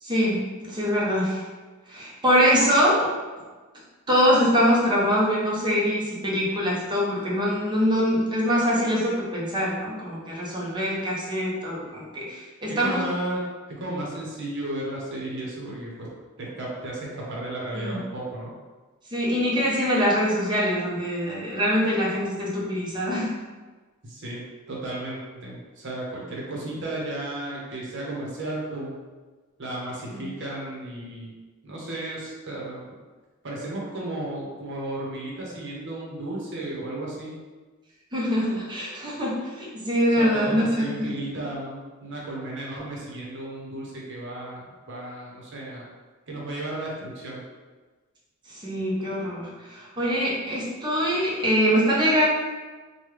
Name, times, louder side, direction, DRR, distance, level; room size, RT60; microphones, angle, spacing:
voice 1, 0.0-1.4 1.9-3.1 4.1-13.0 17.7-18.0 19.1-23.4 30.1-30.2 38.1-41.1 48.5-52.3, equal, 20° right, -5 dB, 0.8 m, -24 dB
voice 2, 12.7-13.4 13.7-16.1 16.4-18.5 24.0-29.0 29.6-31.3 31.6-32.9 33.4-37.4 40.2-45.9 46.3-47.4, right 1 dB, 60° right, -4 dB, 0.9 m, -34 dB
3.2 x 2.2 x 3.2 m, 1.3 s
head